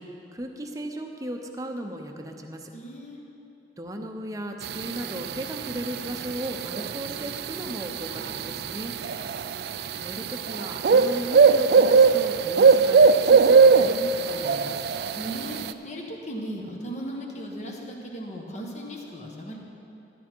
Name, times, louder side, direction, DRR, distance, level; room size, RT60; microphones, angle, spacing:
voice 1, 0.0-2.7 3.8-8.9 10.0-14.8, right 1 dB, 20° right, 3 dB, 0.8 m, -36 dB
voice 2, 2.7-3.2 8.2-8.8 15.1-19.6, equal, 40° left, 0 dB, 1.4 m, -37 dB
sound 1, 4.6-15.7, right 5 dB, 60° right, 0.3 m, -20 dB
13.0 x 11.0 x 4.5 m, 2.8 s
head